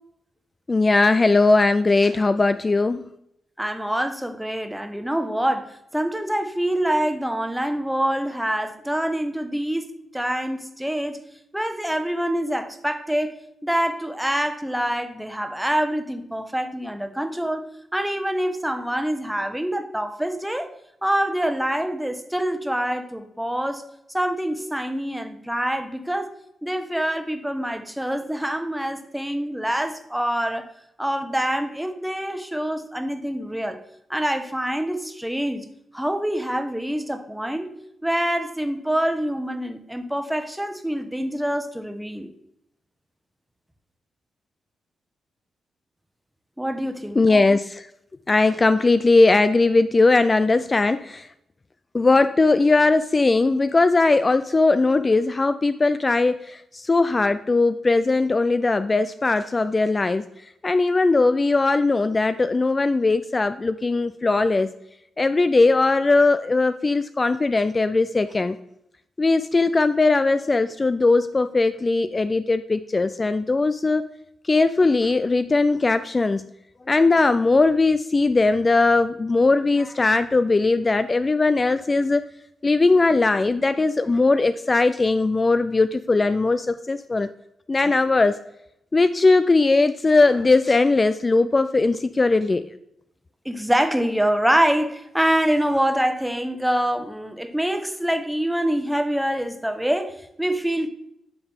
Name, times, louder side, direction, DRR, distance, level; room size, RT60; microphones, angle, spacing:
voice 1, 0.7-3.0 47.2-47.9 48.3-51.3 51.9-60.3 60.6-64.7 65.2-68.6 69.2-74.0 74.5-76.5 76.9-82.2 82.6-87.3 87.7-88.4 88.9-92.6, left 3 dB, 35° left, 12 dB, 0.3 m, -19 dB
voice 2, 3.6-9.9 10.1-11.2 11.5-13.3 13.6-17.6 17.9-20.7 21.0-23.8 24.1-26.3 26.6-30.7 31.0-33.8 34.1-35.7 35.9-37.7 38.0-42.3 46.6-47.2 93.4-100.9, right 1 dB, 5° right, 8 dB, 1.0 m, -25 dB
11.0 x 3.9 x 3.6 m, 0.79 s
hypercardioid pair, 40°, 0 cm